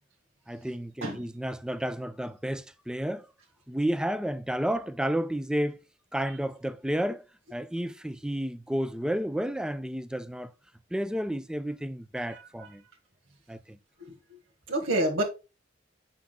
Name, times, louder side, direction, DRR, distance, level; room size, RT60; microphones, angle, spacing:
voice 1, 0.5-3.3 3.7-5.8 6.1-7.2 7.5-10.5 10.9-12.8 13.5-13.8, equal, 5° right, 0.4 m, -31 dB
voice 2, 12.1-12.5 14.0-14.4 14.7-15.2, right 1 dB, 80° right, 1.7 m, -29 dB
8.5 x 5.8 x 2.2 m
head